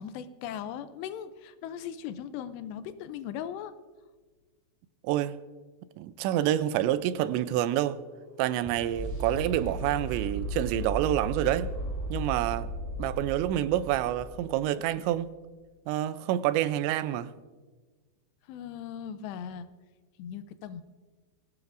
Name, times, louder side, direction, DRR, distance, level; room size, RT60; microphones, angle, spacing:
voice 1, 0.0-3.7 18.5-19.7 20.2-20.8, left 9 dB, 80° left, 2.7 m, -38 dB
voice 2, 5.0-5.4 6.0-8.0 8.4-11.7 12.1-12.7 13.0-15.3 15.9-17.3, right 12 dB, 85° right, 2.9 m, -27 dB
sound 1, 7.0-14.9, right 1 dB, 5° right, 2.0 m, -36 dB
20.5 x 16.0 x 2.6 m
omnidirectional pair, 5.1 m